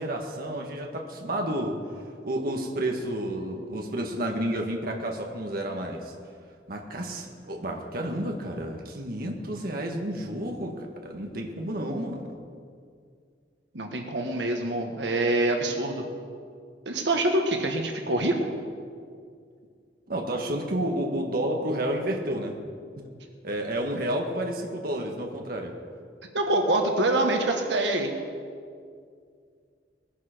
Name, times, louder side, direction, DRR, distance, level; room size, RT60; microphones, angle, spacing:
voice 1, 0.0-1.8 2.2-6.1 6.7-12.3 20.1-22.6 23.0-23.1 23.4-25.7, right 1 dB, 55° right, 2 dB, 1.5 m, -30 dB
voice 2, 13.7-16.0 16.8-18.4 26.3-28.1, right 2 dB, 80° right, 3 dB, 1.5 m, -25 dB
20.0 x 11.0 x 5.1 m, 2.2 s
head